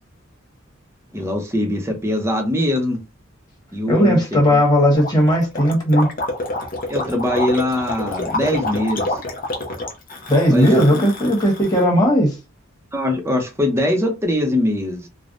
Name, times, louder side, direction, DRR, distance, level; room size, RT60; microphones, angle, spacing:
voice 1, 1.1-3.0 3.7-4.6 6.9-9.1 10.5-11.0 12.9-15.1, left 1 dB, 15° right, 0.7 m, -22 dB
voice 2, 3.9-6.1 10.3-12.3, equal, 20° left, 1.3 m, -16 dB
Gurgling, 4.9-11.8, left 2 dB, 45° left, 0.8 m, -27 dB
3.3 x 2.2 x 2.6 m
head